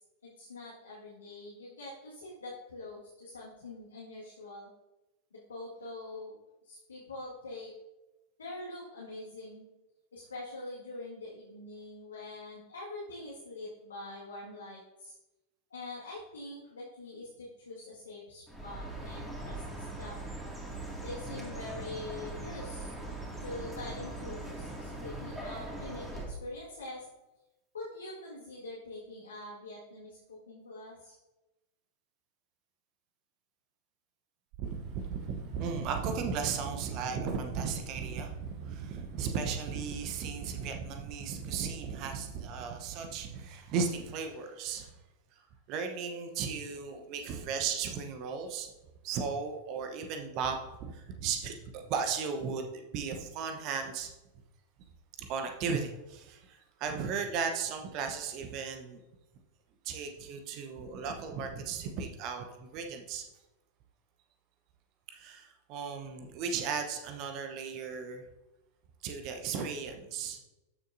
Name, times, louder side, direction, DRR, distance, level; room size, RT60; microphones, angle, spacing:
voice 1, 0.2-4.7 5.3-6.4 6.6-7.7 8.4-9.7 10.1-15.1 15.7-20.2 21.0-22.9 23.4-27.1 27.7-31.2, left 2 dB, 70° left, -6 dB, 1.9 m, -44 dB
Chirp tweet, 18.5-26.3, right 1 dB, 10° right, 2.3 m, -41 dB
voice 2, 34.6-44.9 45.7-48.7 49.0-54.1 55.2-59.0 59.8-63.2 65.1-68.2 69.0-70.4, right 6 dB, 40° right, 5 dB, 1.0 m, -35 dB
13.5 x 6.5 x 2.7 m, 1.0 s
figure-of-eight pair, 90°, 0 cm